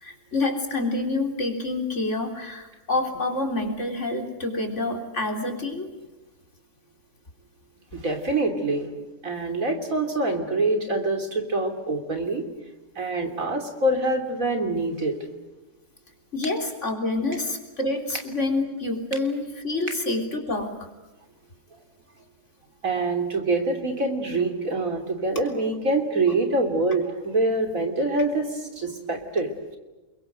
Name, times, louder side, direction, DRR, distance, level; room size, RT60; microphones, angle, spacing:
voice 1, 0.0-5.9 16.3-20.9, left 2 dB, 45° left, 4 dB, 3.9 m, -27 dB
voice 2, 7.9-8.9 9.2-12.4 13.0-15.2 22.8-29.8, right 2 dB, 55° right, 5 dB, 3.5 m, -25 dB
28.5 x 23.0 x 7.8 m, 1.1 s
omnidirectional pair, 1.7 m